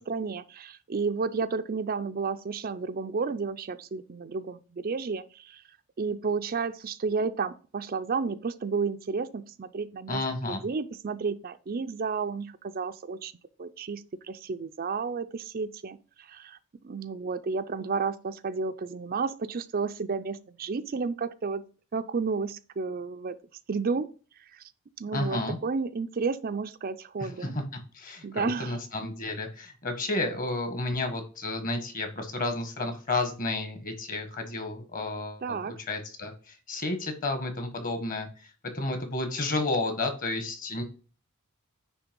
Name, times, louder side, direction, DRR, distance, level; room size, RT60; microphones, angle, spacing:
voice 1, 0.0-5.6 6.0-10.2 10.5-13.3 13.6-16.6 16.8-21.6 21.9-23.4 23.7-24.1 24.5-24.6 25.0-27.6 28.2-28.8 35.4-35.7, right 4 dB, 40° right, 0.4 m, -32 dB
voice 2, 10.1-10.6 25.1-25.6 27.2-27.6 27.9-40.8, left 2 dB, 40° left, 1.6 m, -32 dB
9.8 x 3.3 x 5.2 m
head